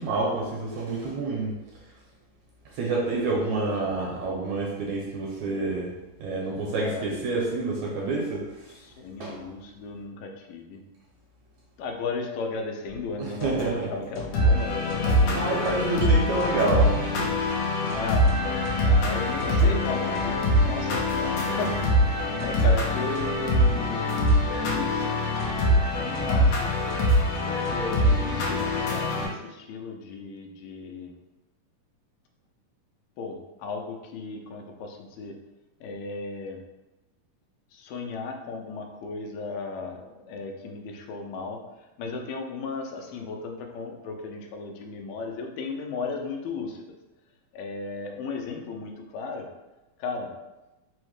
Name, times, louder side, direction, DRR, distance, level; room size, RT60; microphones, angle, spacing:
voice 1, 0.0-1.6 2.7-5.9 6.2-8.7 9.2-9.4 13.2-13.9 15.0-17.3, right 3 dB, 75° right, -3 dB, 1.8 m, -28 dB
voice 2, 3.2-3.7 6.8-7.1 8.7-10.8 11.8-15.9 17.9-18.4 18.8-22.1 22.4-24.1 24.7-25.1 25.9-26.7 27.7-31.1 33.2-35.4 35.8-36.6 37.7-41.6 42.0-46.9 47.5-49.5 50.0-50.3, left 4 dB, 85° left, 2 dB, 2.3 m, -35 dB
sound 1, 12.8-28.8, left 2 dB, 55° left, 1.4 m, -40 dB
sound 2, 14.3-29.3, left 1 dB, 70° left, 1.9 m, -23 dB
5.4 x 2.1 x 4.7 m, 1.0 s
omnidirectional pair, 3.9 m